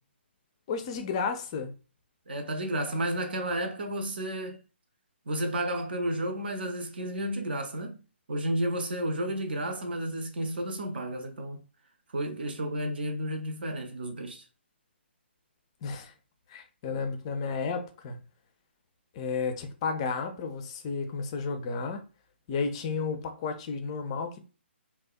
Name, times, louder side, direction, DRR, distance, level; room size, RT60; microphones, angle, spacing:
voice 1, 0.7-1.7 15.8-16.1 16.5-18.2 19.1-22.0 22.5-24.4, left 5 dB, 30° left, 0.4 m, -32 dB
voice 2, 2.3-4.6 5.3-8.0 8.3-11.6 12.1-14.4, right 1 dB, 55° right, 0.4 m, -32 dB
2.6 x 2.0 x 2.3 m
figure-of-eight pair, 135°, 6 cm